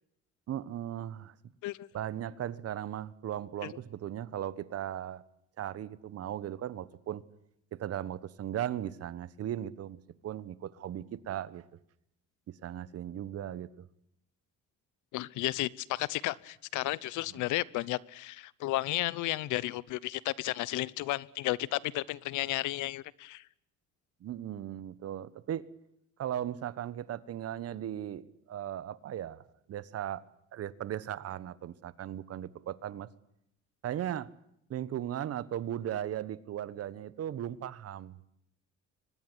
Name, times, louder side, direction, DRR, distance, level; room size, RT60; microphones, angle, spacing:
voice 1, 0.5-1.3 1.9-5.2 5.6-7.2 7.7-11.6 12.5-13.9 17.3-17.4 24.2-25.6 26.2-29.4 29.7-30.2 30.5-33.1 33.8-34.3 34.7-38.3, right 11 dB, 50° right, 17 dB, 1.4 m, -37 dB
voice 2, 15.1-23.4, left 17 dB, 80° left, 22 dB, 1.0 m, -33 dB
24.0 x 20.5 x 8.2 m, 0.77 s
cardioid pair, 125°, 30 cm